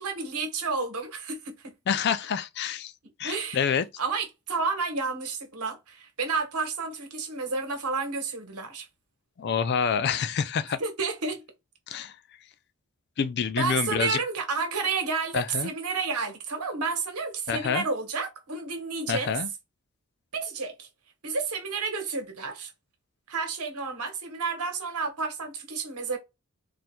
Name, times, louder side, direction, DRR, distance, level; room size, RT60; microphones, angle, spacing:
voice 1, 0.0-1.7 3.2-8.9 10.8-11.4 13.6-19.3 20.3-20.9 21.2-22.7 23.3-26.2, right 4 dB, 80° right, 1.1 m, -31 dB
voice 2, 1.9-2.9 3.2-3.9 9.4-10.8 11.9-12.1 13.2-14.2 15.3-15.7 17.5-17.8 19.1-19.5, left 7 dB, 45° left, 0.3 m, -27 dB
4.2 x 2.4 x 2.2 m
head